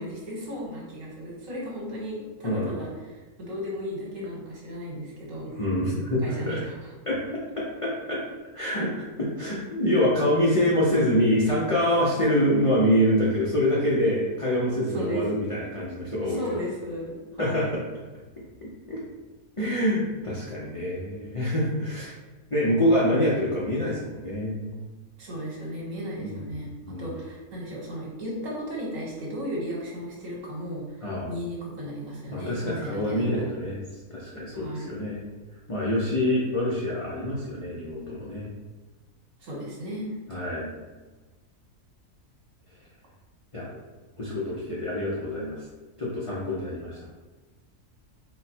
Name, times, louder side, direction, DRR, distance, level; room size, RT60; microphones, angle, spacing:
voice 1, 0.0-5.5 6.2-6.9 12.1-12.4 14.9-15.3 16.2-17.7 25.2-26.7 27.0-33.4 34.5-35.0 39.4-40.1, equal, 60° right, -4 dB, 1.5 m, -35 dB
voice 2, 5.5-6.6 7.1-7.2 7.6-8.2 8.5-16.4 17.4-17.8 18.6-19.0 19.6-22.1 22.5-24.7 26.2-26.3 26.8-27.1 31.0-31.3 32.3-33.8 34.1-35.2 35.7-38.5 40.3-40.7 43.5-43.7 44.2-45.6 46.0-47.0, equal, 45° left, -6 dB, 0.4 m, -25 dB
4.1 x 2.1 x 4.2 m, 1.3 s
omnidirectional pair, 1.6 m